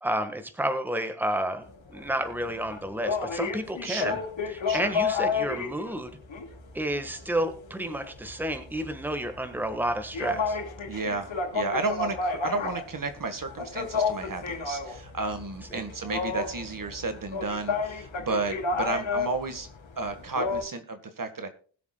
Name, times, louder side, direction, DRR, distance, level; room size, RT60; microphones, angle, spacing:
voice 1, 0.0-1.6 1.9-4.2 4.5-6.1 6.7-10.6 15.7-15.9, right 1 dB, 5° right, 7 dB, 1.4 m, -30 dB
sound 1, 1.6-20.6, left 4 dB, 85° left, 2.5 m, -32 dB
voice 2, 3.8-4.2 4.7-4.9 10.9-19.7 20.0-21.5, right 3 dB, 45° right, 8 dB, 1.5 m, -32 dB
21.0 x 7.1 x 2.2 m, 0.43 s
wide cardioid pair, 150°, 45 cm